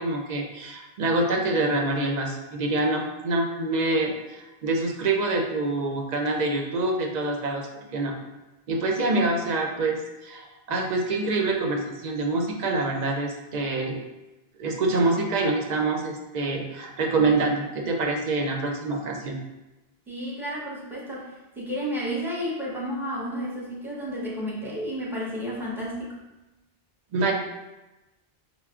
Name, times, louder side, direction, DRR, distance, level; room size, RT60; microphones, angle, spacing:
voice 1, 0.0-8.1 8.7-14.0 14.6-19.4 27.1-27.3, right 2 dB, 55° right, 2 dB, 0.5 m, -26 dB
voice 2, 20.1-26.2, equal, ahead, -6 dB, 0.7 m, -32 dB
5.7 x 2.1 x 2.3 m, 1.0 s
omnidirectional pair, 1.0 m